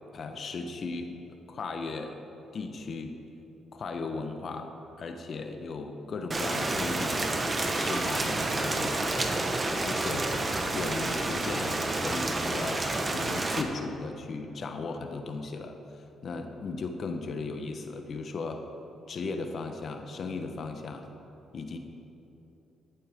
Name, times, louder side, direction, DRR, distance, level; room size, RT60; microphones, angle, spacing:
voice 1, 0.1-1.1 1.5-2.2 2.5-3.1 3.7-4.7 5.0-7.2 7.7-9.3 9.8-10.3 10.7-18.6 19.1-21.1 21.5-21.8, left 4 dB, 50° left, 5 dB, 0.9 m, -36 dB
Rain, 6.3-13.6, right 2 dB, 25° right, 1.1 m, -29 dB
13.5 x 11.5 x 3.5 m, 3.0 s
cardioid pair, 90°, 0 cm